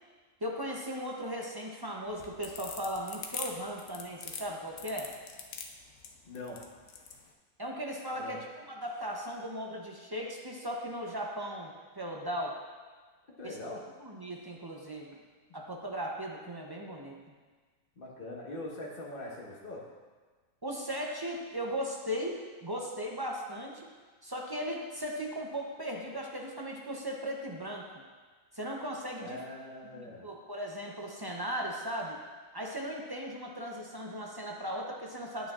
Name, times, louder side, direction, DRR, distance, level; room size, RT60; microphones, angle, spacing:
voice 1, 0.4-5.1 7.6-12.6 13.4-13.6 14.0-15.2 15.5-17.2 20.6-23.9 24.2-27.8 28.5-29.4 29.9-32.2 32.5-35.5, equal, 30° right, -1 dB, 0.4 m, -37 dB
sound 1, 2.1-7.2, left 6 dB, 65° left, 1.0 m, -41 dB
voice 2, 6.3-6.6 8.2-8.4 13.4-13.8 18.0-19.8 29.2-30.2, left 1 dB, 40° left, -3 dB, 1.4 m, -42 dB
9.0 x 8.7 x 2.4 m, 1.4 s
omnidirectional pair, 1.5 m